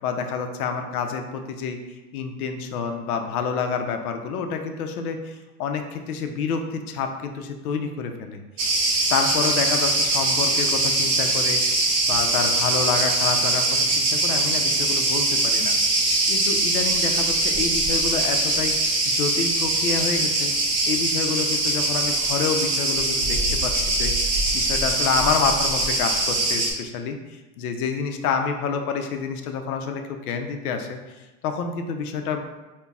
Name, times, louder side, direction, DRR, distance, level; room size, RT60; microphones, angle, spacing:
voice 1, 0.0-8.4 9.1-15.8 16.3-18.8 19.0-20.5 20.9-32.4, left 6 dB, 75° left, 6 dB, 0.6 m, -28 dB
Cricket, 8.6-26.7, right 2 dB, 25° right, 0.7 m, -22 dB
5.2 x 2.2 x 2.3 m, 1.1 s
hypercardioid pair, 125°, 45 cm